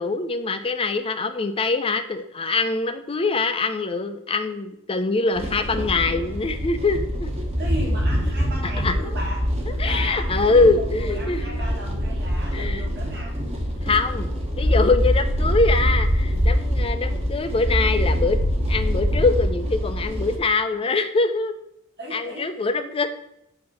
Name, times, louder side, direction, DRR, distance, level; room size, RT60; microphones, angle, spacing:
voice 1, 0.0-7.3 8.8-9.1 9.8-11.6 12.5-12.8 13.8-14.3 14.6-18.4 18.7-21.6 22.1-23.1, left 3 dB, 25° left, 8 dB, 0.5 m, -23 dB
sound 1, 5.3-20.4, equal, 30° right, 1.1 m, -24 dB
voice 2, 7.6-13.4 22.0-22.6, right 1 dB, 50° right, -4 dB, 1.9 m, -36 dB
7.6 x 2.9 x 5.5 m, 0.78 s
head